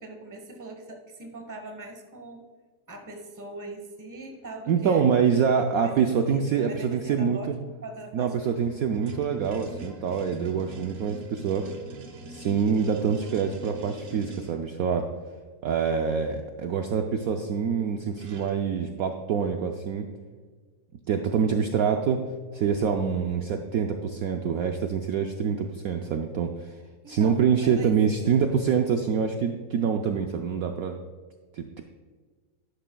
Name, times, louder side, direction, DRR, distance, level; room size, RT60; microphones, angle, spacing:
voice 1, 0.0-2.5 2.9-5.3 5.8-7.5 7.8-8.6 27.0-27.9, right 2 dB, 15° right, 3 dB, 0.9 m, -41 dB
voice 2, 4.7-7.5 8.1-11.6 12.3-15.0 15.6-20.1 21.1-22.2 22.5-26.5 27.1-31.0 31.5-31.8, right 6 dB, 70° right, 4 dB, 0.9 m, -25 dB
sound 1, 8.1-14.6 17.7-17.8 18.1-18.7, right 1 dB, 50° right, 1.3 m, -43 dB
11.0 x 11.0 x 2.3 m, 1.5 s
omnidirectional pair, 2.0 m